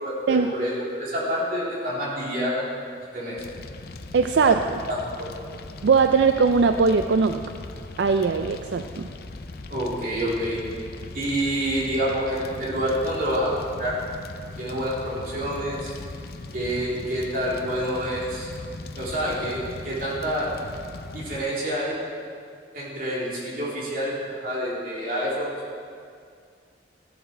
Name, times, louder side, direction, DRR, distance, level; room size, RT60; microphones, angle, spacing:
voice 1, 0.0-2.7 3.1-3.5 4.4-4.5 4.9-5.3 9.7-10.6 11.1-14.0 14.6-15.9 16.5-18.5 18.9-20.5 21.1-22.0 22.7-25.5, equal, 50° right, -6 dB, 3.4 m, -28 dB
Fire, 3.4-21.4, left 2 dB, 55° left, 0.6 m, -39 dB
voice 2, 4.1-4.8 5.8-7.4 8.0-9.1, right 5 dB, 80° right, 7 dB, 0.4 m, -20 dB
14.0 x 11.5 x 4.4 m, 2.3 s
head